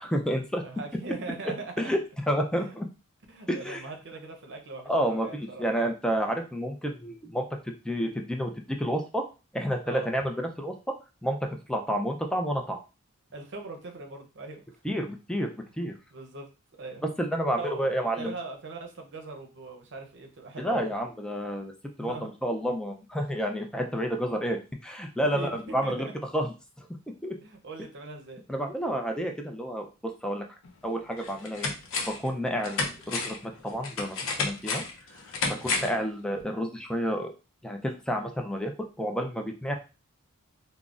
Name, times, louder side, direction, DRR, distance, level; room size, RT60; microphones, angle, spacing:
voice 1, 0.0-0.6 1.8-2.0 2.3-2.9 3.5-3.8 4.9-7.5 7.8-9.2 9.5-10.7 11.2-11.4 11.7-12.8 14.8-15.5 15.8-15.9 17.2-18.3 20.6-21.7 22.0-26.1 26.3-26.5 27.2-27.4 28.5-30.5 30.8-31.7 32.1-34.8 35.5-37.3 37.6-38.7 39.0-39.7, equal, 5° left, 3 dB, 0.4 m, -30 dB
voice 2, 0.6-1.9 2.5-2.8 3.3-5.9 9.8-10.1 13.3-14.8 16.1-16.5 16.8-17.0 17.6-20.9 22.0-22.3 25.2-26.1 27.4-28.4 35.4-36.0, right 3 dB, 55° right, 3 dB, 0.7 m, -41 dB
sound 1, 30.6-30.7 31.2-32.3 32.6-36.0 36.4-36.5, left 4 dB, 65° left, 0.6 m, -32 dB
3.7 x 2.0 x 2.4 m, 0.31 s
head